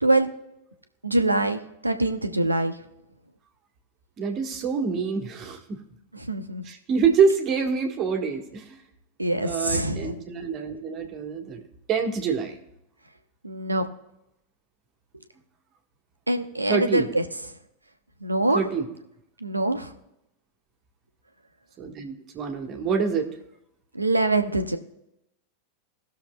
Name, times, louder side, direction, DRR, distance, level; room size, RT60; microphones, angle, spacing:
voice 1, 1.0-2.7 6.1-6.6 9.2-10.1 13.4-13.8 16.3-17.2 18.2-18.6 19.4-19.9 23.9-24.8, right 2 dB, 85° right, 8 dB, 0.8 m, -24 dB
voice 2, 4.2-5.8 6.6-8.8 9.4-11.6 11.9-12.6 16.7-17.1 18.5-18.9 21.8-23.3, right 5 dB, 30° right, 3 dB, 1.5 m, -26 dB
19.0 x 6.6 x 2.3 m, 0.85 s
figure-of-eight pair, 90°, 0 cm